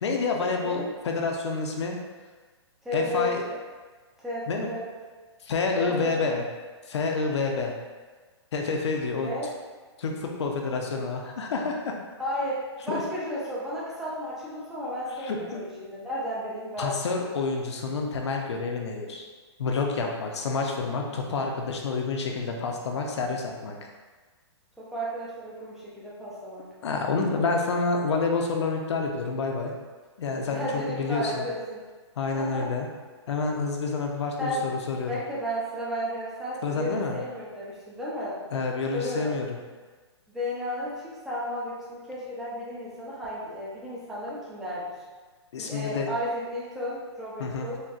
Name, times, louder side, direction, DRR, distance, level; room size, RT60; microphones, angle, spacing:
voice 1, 0.0-2.0 2.9-3.4 4.5-4.7 5.4-6.4 6.9-7.7 8.5-9.3 10.0-12.0 12.9-13.0 15.2-15.6 16.8-19.3 19.6-23.8 26.8-29.7 30.2-31.5 32.2-32.9 33.3-35.2 36.6-37.2 38.5-39.6 45.5-46.1 47.4-47.7, left 4 dB, 70° left, 1 dB, 0.6 m, -28 dB
voice 2, 0.6-0.9 2.8-3.6 4.2-4.9 5.8-6.4 9.1-9.5 10.9-11.0 12.2-17.0 24.8-26.6 30.5-31.8 32.3-32.7 34.4-34.6 34.9-38.4 38.9-39.3 40.3-44.9 45.6-47.8, equal, 5° right, -8 dB, 0.3 m, -33 dB
4.1 x 2.2 x 2.4 m, 1.4 s
hypercardioid pair, 160°, 15 cm